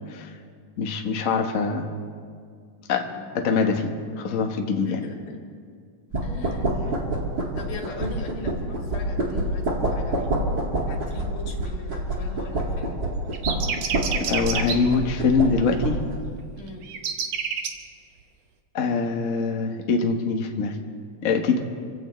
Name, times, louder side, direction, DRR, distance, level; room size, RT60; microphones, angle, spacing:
voice 1, 0.8-1.9 2.9-3.1 3.3-5.0 14.1-16.0 18.7-20.8 21.2-21.6, left 4 dB, 70° left, 3 dB, 0.7 m, -24 dB
voice 2, 4.8-5.4 6.2-6.7 7.6-10.3 10.9-13.0 16.6-16.9, left 2 dB, 90° left, 0 dB, 3.8 m, -39 dB
sound 1, 6.1-16.2, right 1 dB, 35° right, 2.3 m, -27 dB
sound 2, 13.3-14.8 16.8-17.7, right 7 dB, 65° right, 2.0 m, -28 dB
28.0 x 16.0 x 3.2 m, 2.1 s
omnidirectional pair, 3.5 m